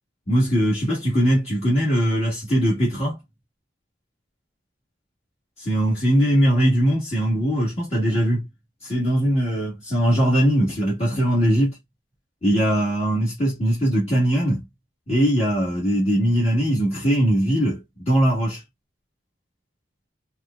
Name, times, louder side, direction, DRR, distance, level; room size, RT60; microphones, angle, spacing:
voice 1, 0.3-3.2 5.6-8.4 8.8-11.8 12.4-14.6 15.1-18.6, equal, 35° left, 1.4 m, -20 dB
4.2 x 2.3 x 2.2 m
head